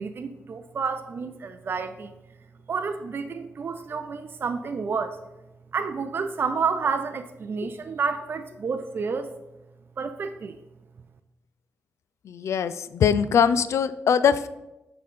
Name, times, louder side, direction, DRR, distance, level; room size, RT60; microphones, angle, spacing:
voice 1, 0.0-2.1 2.7-5.2 5.7-9.3 10.0-10.6, right 5 dB, 50° right, 8 dB, 0.4 m, -30 dB
voice 2, 12.3-14.5, left 7 dB, 85° left, 14 dB, 0.3 m, -22 dB
6.6 x 3.8 x 5.4 m, 0.96 s
wide cardioid pair, 115°, 5 cm